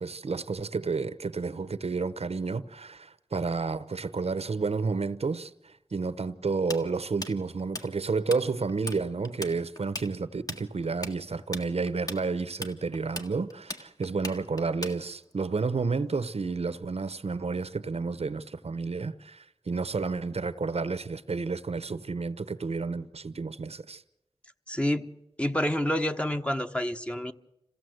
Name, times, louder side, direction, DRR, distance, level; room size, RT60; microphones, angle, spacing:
voice 1, 0.0-24.0, right 4 dB, 70° right, 0.9 m, -31 dB
Tools, 6.7-8.4 8.7-9.0 9.3-15.3, left 1 dB, 35° left, 1.7 m, -37 dB
voice 2, 24.7-25.1 25.4-27.3, left 1 dB, 10° left, 1.1 m, -28 dB
26.5 x 16.0 x 7.9 m
cardioid pair, 45°, 11 cm